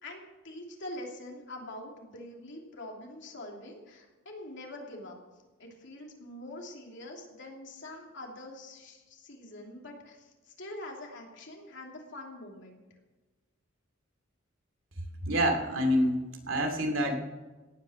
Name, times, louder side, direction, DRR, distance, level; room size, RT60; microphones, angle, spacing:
voice 1, 0.0-5.2 5.6-12.8 16.0-16.1, left 1 dB, 65° left, 0 dB, 3.0 m, -44 dB
voice 2, 15.3-17.2, equal, 75° right, 4 dB, 2.5 m, -27 dB
17.0 x 9.5 x 6.4 m, 1.2 s
head